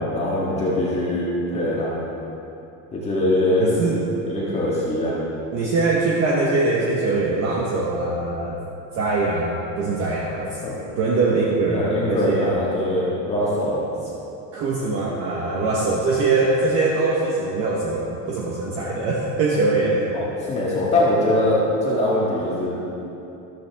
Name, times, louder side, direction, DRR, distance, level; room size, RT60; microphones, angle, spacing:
voice 1, 0.0-2.0 2.9-3.7 4.2-5.2 10.6-10.8 11.7-13.8 20.1-22.7, left 1 dB, 15° left, -7 dB, 1.7 m, -22 dB
voice 2, 3.6-4.0 5.5-8.6 8.9-10.6 11.0-12.6 14.5-20.1, right 3 dB, 35° right, -3 dB, 1.2 m, -22 dB
14.0 x 13.0 x 3.5 m, 2.9 s
cardioid pair, 180°, 41 cm